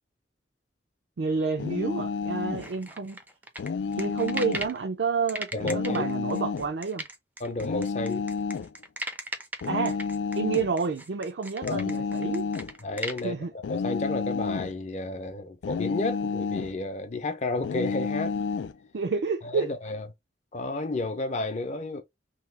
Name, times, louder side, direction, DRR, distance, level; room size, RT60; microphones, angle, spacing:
voice 1, 1.2-3.2 4.0-7.0 9.6-10.0 10.4-12.5 13.2-13.5 18.9-19.7, right 5 dB, 70° right, 0.5 m, -29 dB
sound 1, 1.6-2.7 3.6-4.7 5.6-6.7 7.6-8.7 9.6-10.7 11.6-12.7 13.6-14.8 15.6-16.8 17.6-18.7, left 5 dB, 90° left, 0.4 m, -30 dB
sound 2, 2.6-4.8 5.3-13.2, right 1 dB, 10° right, 0.4 m, -37 dB
voice 2, 5.5-6.0 7.4-8.3 11.6-11.9 12.8-18.4 19.4-20.1 20.5-22.0, left 2 dB, 40° left, 0.6 m, -32 dB
3.0 x 2.3 x 3.3 m
head